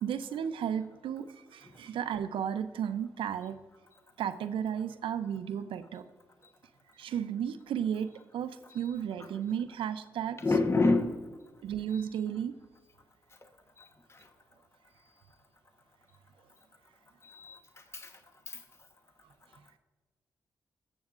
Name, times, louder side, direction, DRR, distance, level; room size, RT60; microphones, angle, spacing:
voice 1, 0.0-3.6 4.2-6.0 7.0-10.4 11.6-12.5, right 8 dB, 80° right, 10 dB, 0.6 m, -34 dB
voice 2, 10.4-11.2 11.9-12.0 13.8-13.9 17.2-17.6 17.9-18.1 18.5-18.6, left 3 dB, 30° left, 5 dB, 1.1 m, -27 dB
18.5 x 7.1 x 2.5 m, 1.3 s
supercardioid pair, 45°, 9 cm